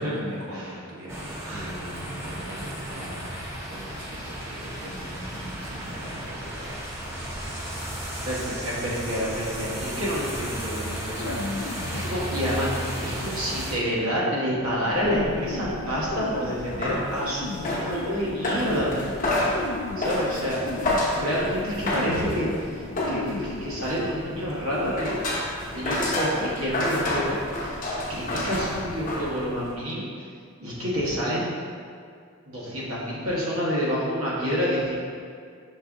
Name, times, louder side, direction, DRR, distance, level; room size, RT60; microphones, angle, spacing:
voice 1, 0.0-7.2, right 1 dB, 65° right, -4 dB, 0.9 m, -40 dB
sound 1, 1.1-13.8, right 1 dB, 10° right, 0.6 m, -34 dB
voice 2, 8.2-18.9 20.0-20.6 21.1-25.3 25.6-27.8 28.1-30.0 30.6-31.5 32.5-34.9, equal, 80° right, -7 dB, 1.2 m, -28 dB
sound 2, 11.2-24.9, left 3 dB, 60° left, 0.3 m, -37 dB
sound 3, 14.9-29.7, left 1 dB, 40° left, 0.8 m, -30 dB
5.4 x 3.5 x 2.6 m, 2.2 s
head